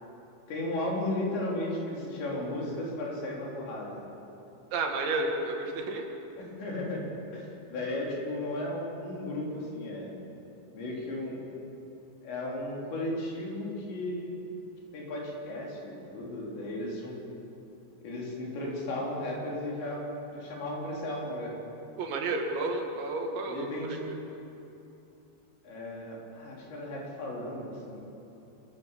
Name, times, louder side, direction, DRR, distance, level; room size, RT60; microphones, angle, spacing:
voice 1, 0.5-4.0 6.6-10.1 10.7-11.4 12.2-14.4 14.9-17.2 18.0-20.0 20.3-21.6 23.5-24.0 25.6-28.0, left 1 dB, 70° left, -3 dB, 6.4 m, -35 dB
voice 2, 4.7-6.1 22.0-24.0, right 3 dB, 75° right, 2 dB, 4.2 m, -31 dB
26.5 x 15.0 x 7.5 m, 2.9 s
omnidirectional pair, 5.3 m